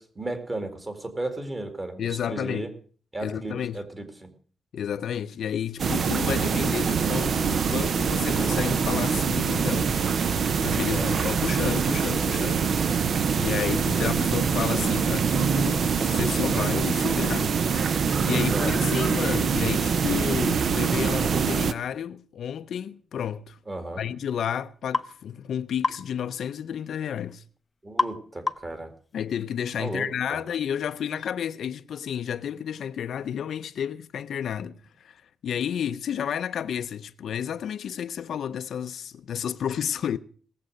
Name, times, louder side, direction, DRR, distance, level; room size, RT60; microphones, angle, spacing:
voice 1, 0.0-2.7 3.1-4.3 10.9-11.1 13.7-14.2 18.3-18.8 23.7-24.0 27.8-28.9 29.8-30.4, right 2 dB, 25° right, 2.3 m, -35 dB
voice 2, 2.0-2.7 3.2-3.8 4.7-23.6 24.0-27.4 29.1-40.2, left 9 dB, 70° left, 0.6 m, -31 dB
sound 1, 5.8-21.7, right 6 dB, 55° right, 0.7 m, -24 dB
sound 2, 24.9-25.1 25.8-26.1 28.0-28.2 28.5-28.8, left 3 dB, 25° left, 0.6 m, -26 dB
18.5 x 7.6 x 6.4 m
wide cardioid pair, 140°, 0 cm